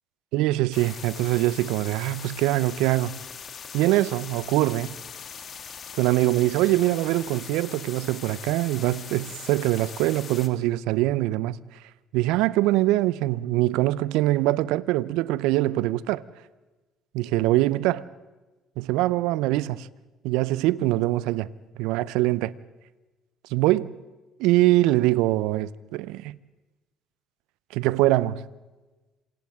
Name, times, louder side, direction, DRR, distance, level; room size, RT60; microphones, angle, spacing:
voice 1, 0.3-3.2 3.7-5.0 5.9-11.6 12.1-16.2 17.1-18.0 18.8-19.9 20.2-21.5 21.8-22.5 23.5-24.0 24.4-26.4 27.7-28.5, right 17 dB, 75° right, 0.6 m, -23 dB
sound 1, 0.7-10.5, left 7 dB, 50° left, 2.6 m, -41 dB
28.0 x 25.5 x 3.7 m
hypercardioid pair, 55°, 0 cm